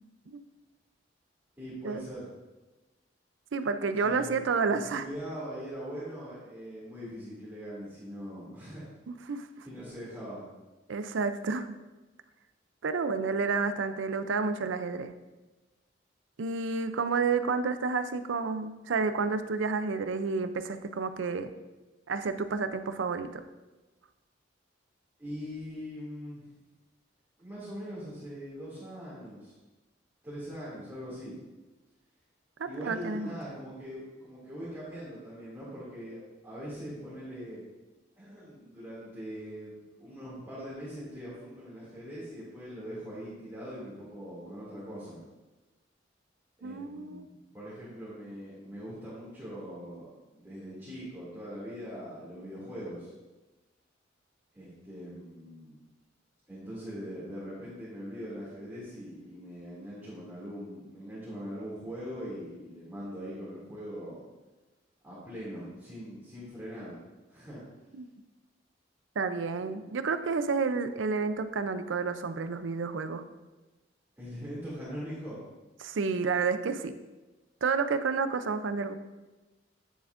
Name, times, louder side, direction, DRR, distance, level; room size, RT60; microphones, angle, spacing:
voice 1, 1.6-2.3 4.0-8.9 9.6-10.5 25.2-26.5 27.4-29.6 30.2-31.4 32.6-37.6 38.2-45.2 46.6-53.1 54.5-55.8 56.5-64.2 65.0-67.0 67.3-67.6 69.6-69.9 74.2-75.4, equal, 10° right, -11 dB, 2.4 m, -42 dB
voice 2, 3.5-5.0 9.1-9.7 10.9-11.8 12.8-15.1 16.4-21.5 22.1-23.4 32.6-33.4 46.6-47.2 68.0-68.1 69.2-73.2 75.8-77.0 77.6-78.9, right 4 dB, 80° right, 10 dB, 0.5 m, -30 dB
9.4 x 6.9 x 2.5 m, 1.1 s
head